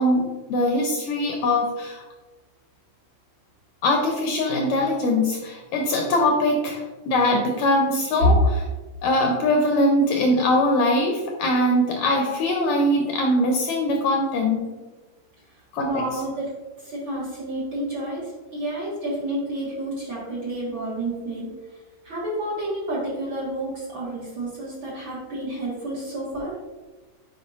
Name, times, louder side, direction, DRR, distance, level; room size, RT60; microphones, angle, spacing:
voice 1, 0.0-2.0 3.8-8.6 9.0-14.7 15.7-16.0, left 1 dB, 75° left, 1 dB, 1.7 m, -22 dB
voice 2, 15.5-16.5 16.8-21.5 22.0-26.6, right 1 dB, 45° right, -7 dB, 1.8 m, -29 dB
8.3 x 5.0 x 2.4 m, 1.2 s
omnidirectional pair, 3.8 m